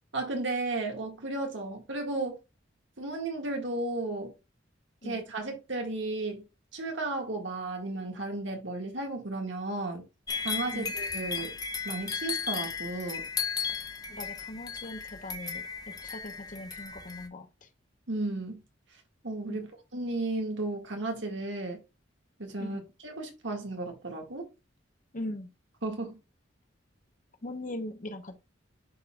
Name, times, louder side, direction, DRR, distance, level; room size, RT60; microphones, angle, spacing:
voice 1, 0.1-2.4 3.0-4.3 5.0-6.5 6.7-10.1 10.4-11.5 11.8-13.2 18.1-18.6 19.2-21.8 22.4-24.5 25.8-26.2, right 2 dB, 70° right, 1.9 m, -34 dB
sound 1, 10.3-17.3, left 6 dB, 20° left, 0.7 m, -35 dB
voice 2, 14.1-15.6 16.0-17.7 19.5-19.6 22.6-22.8 25.1-25.5 27.4-28.4, left 1 dB, 45° left, 1.0 m, -40 dB
11.0 x 4.0 x 2.4 m
head